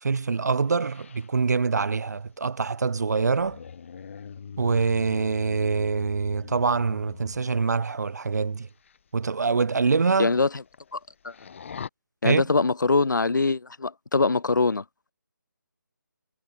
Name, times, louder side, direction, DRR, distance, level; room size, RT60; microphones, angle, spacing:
voice 1, 0.0-3.6 4.6-8.7 9.1-10.3 12.2-12.4, right 4 dB, 55° right, 0.5 m, -25 dB
sound 1, 0.7-7.5 8.6-9.0 9.3-9.4 10.0-10.1 10.3-11.0 11.2-11.9, left 6 dB, 40° left, 7.2 m, -43 dB
voice 2, 10.2-10.6 10.9-11.0 11.2-11.3 12.2-14.8, left 3 dB, 65° left, 1.1 m, -23 dB
figure-of-eight pair, 155°, 11 cm